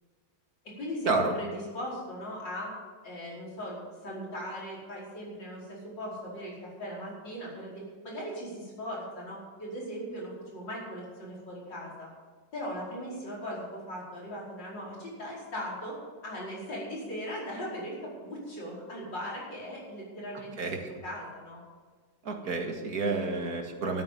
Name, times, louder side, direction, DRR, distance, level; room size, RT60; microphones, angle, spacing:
voice 1, 0.8-2.7 3.0-12.1 12.5-16.0 16.2-20.7 21.0-21.6, equal, 80° left, -5 dB, 5.6 m, -39 dB
voice 2, 20.6-20.9 22.3-24.0, right 3 dB, 55° right, 3 dB, 2.4 m, -30 dB
13.0 x 9.6 x 7.7 m, 1.5 s
omnidirectional pair, 1.9 m